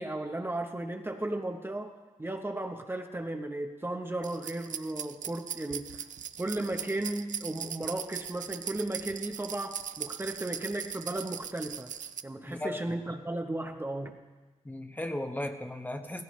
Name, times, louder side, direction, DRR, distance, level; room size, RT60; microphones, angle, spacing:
voice 1, 0.0-1.9 2.2-6.0 6.4-11.9 12.2-14.2, right 1 dB, 20° right, 4 dB, 0.9 m, -35 dB
sound 1, 4.2-12.2, right 9 dB, 80° right, 0.4 m, -39 dB
voice 2, 12.5-13.0 14.6-16.2, left 1 dB, 15° left, 5 dB, 1.0 m, -36 dB
16.0 x 16.0 x 3.2 m, 1.3 s
wide cardioid pair, 95°, 13 cm